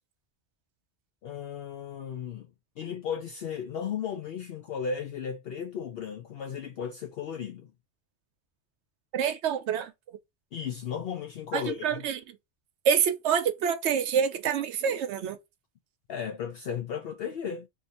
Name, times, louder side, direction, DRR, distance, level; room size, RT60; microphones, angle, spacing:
voice 1, 1.2-2.5 2.8-7.7 10.5-12.0 16.1-17.7, left 7 dB, 65° left, 0.7 m, -35 dB
voice 2, 9.1-9.9 11.5-12.2 12.8-15.4, right 7 dB, 75° right, 0.9 m, -27 dB
2.8 x 2.6 x 4.1 m
omnidirectional pair, 1.2 m